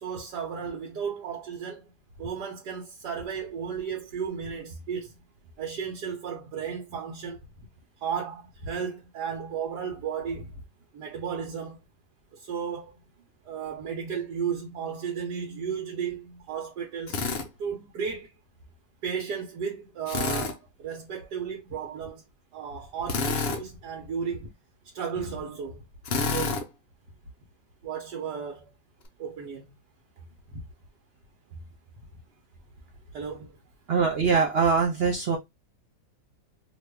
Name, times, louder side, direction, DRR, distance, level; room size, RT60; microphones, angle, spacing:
voice 1, 0.0-1.8 2.2-5.1 5.6-7.4 8.0-10.6 10.9-11.8 12.3-12.9 13.4-17.2 17.6-18.3 19.0-22.2 22.5-24.5 24.9-25.8 26.3-26.7 27.8-28.7 29.2-29.7 30.5-30.6 33.1-33.6, right 7 dB, 85° right, 1.4 m, -34 dB
Drill, 17.1-17.5 20.1-20.5 23.1-23.6 26.1-26.6, left 4 dB, 60° left, 0.6 m, -28 dB
voice 2, 33.9-35.4, right 5 dB, 60° right, 0.6 m, -23 dB
3.0 x 2.5 x 3.3 m
omnidirectional pair, 1.7 m